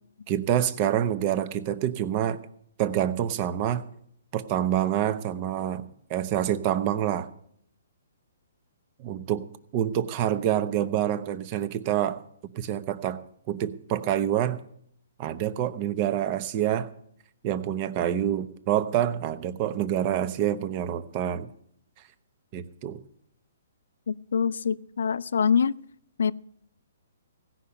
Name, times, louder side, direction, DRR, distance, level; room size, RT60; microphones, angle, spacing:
voice 1, 0.3-2.4 2.8-3.8 4.3-5.8 6.1-7.3 9.0-9.4 9.7-12.2 12.5-13.2 13.5-14.6 15.2-16.9 17.4-21.5 22.5-23.0, right 11 dB, 30° right, 11 dB, 0.8 m, -27 dB
voice 2, 24.1-25.8 26.2-26.3, left 6 dB, 75° left, 18 dB, 0.5 m, -25 dB
16.5 x 5.7 x 9.8 m, 0.69 s
hypercardioid pair, 160°, 0 cm